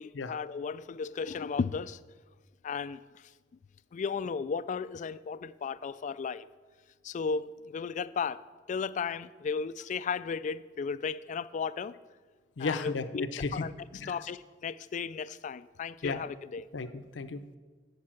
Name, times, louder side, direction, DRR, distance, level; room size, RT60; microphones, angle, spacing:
voice 1, 0.0-2.0 2.6-3.0 3.9-6.5 7.0-8.4 8.7-11.9 12.6-13.3 13.5-13.7 14.1-16.7, left 5 dB, 45° left, 16 dB, 0.3 m, -35 dB
voice 2, 12.6-14.3 16.0-16.2 16.7-17.6, left 4 dB, 90° left, 11 dB, 0.6 m, -35 dB
10.5 x 5.4 x 7.6 m, 1.4 s
head